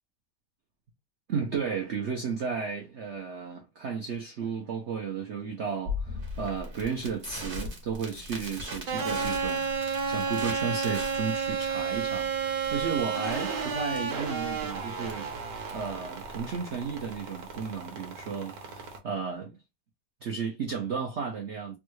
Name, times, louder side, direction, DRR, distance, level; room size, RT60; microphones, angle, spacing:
voice 1, 1.3-9.6 10.1-15.3 15.7-19.5 20.2-21.8, right 6 dB, 85° right, 0.6 m, -33 dB
Crackle, 5.9-17.8, left 2 dB, 40° right, 0.8 m, -40 dB
sound 1, 8.9-19.0, right 5 dB, 60° right, 1.3 m, -32 dB
3.5 x 2.2 x 3.1 m
omnidirectional pair, 2.0 m